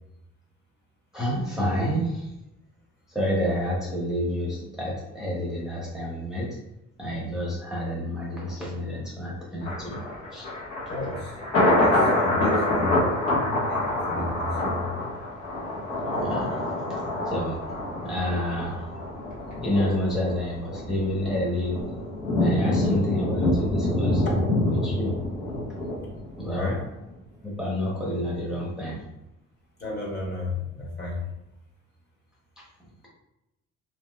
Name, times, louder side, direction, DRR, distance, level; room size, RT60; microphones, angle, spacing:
voice 1, 1.1-2.3 3.1-6.6 7.0-10.0 10.3-10.5 16.1-16.6 17.3-17.6 18.0-18.9 19.6-21.8 22.4-24.2 24.7-25.2 26.4-26.8 27.4-29.0, left 1 dB, ahead, -5 dB, 0.7 m, -29 dB
Thunder, 9.6-26.7 27.1-27.2, left 1 dB, 90° left, 1.3 m, -26 dB
voice 2, 10.9-11.3 11.8-13.0 13.7-14.8 26.5-26.8 29.8-31.2, left 2 dB, 35° left, -3 dB, 1.1 m, -33 dB
2.9 x 2.8 x 2.2 m, 0.91 s
cardioid pair, 90°, 30 cm